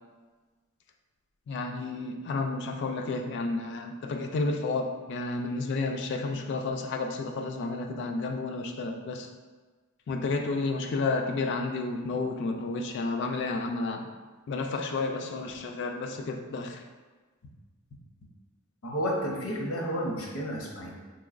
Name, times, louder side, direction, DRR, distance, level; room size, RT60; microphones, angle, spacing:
voice 1, 1.5-9.3 10.1-14.1 14.5-16.8, left 3 dB, 55° left, 4 dB, 0.3 m, -31 dB
voice 2, 18.8-20.9, equal, 80° left, -1 dB, 0.8 m, -31 dB
4.3 x 3.0 x 2.4 m, 1.4 s
head